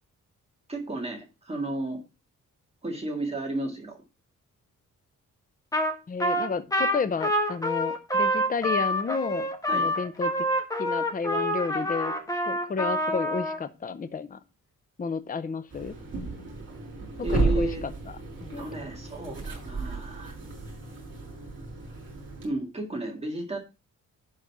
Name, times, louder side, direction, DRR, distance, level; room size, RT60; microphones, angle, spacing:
voice 1, 0.7-2.0 2.8-4.0 9.7-9.9 17.2-17.8 18.6-20.4 22.4-23.6, right 2 dB, 20° right, 0 dB, 2.0 m, -33 dB
Trumpet, 5.7-5.9 6.2-13.6, equal, 10° left, 1.5 m, -27 dB
voice 2, 6.1-10.5 10.8-12.1 12.5-14.4 15.0-15.9 17.3-18.7, left 5 dB, 25° left, 12 dB, 0.7 m, -32 dB
sound 1, 15.7-22.5, right 3 dB, 40° right, 5.7 m, -33 dB
11.0 x 4.1 x 6.0 m, 0.29 s
wide cardioid pair, 160°, 32 cm